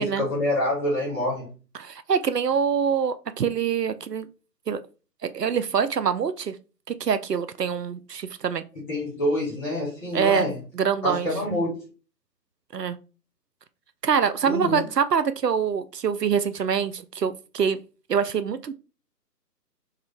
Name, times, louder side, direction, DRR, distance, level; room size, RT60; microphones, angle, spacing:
voice 1, 0.0-1.5 8.7-10.6 11.0-11.8 14.4-14.8, left 1 dB, 5° left, -8 dB, 0.9 m, -26 dB
voice 2, 1.8-4.3 4.7-4.8 5.2-6.5 7.0-8.6 10.1-10.5 10.8-11.3 12.7-13.0 14.0-17.8 18.1-18.7, right 7 dB, 70° right, 12 dB, 0.6 m, -25 dB
3.7 x 3.2 x 4.2 m, 0.34 s
figure-of-eight pair, 140°, 50 cm